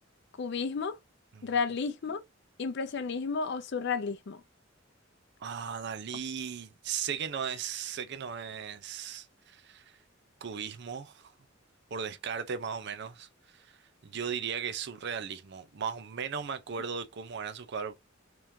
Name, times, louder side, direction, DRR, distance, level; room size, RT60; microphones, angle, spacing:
voice 1, 0.4-1.0 1.4-2.2 2.6-4.4, left 5 dB, 60° left, 0.5 m, -32 dB
voice 2, 5.4-9.9 10.4-11.3 11.9-13.8 14.0-17.9, right 7 dB, 60° right, 0.5 m, -37 dB
3.5 x 3.1 x 2.6 m
head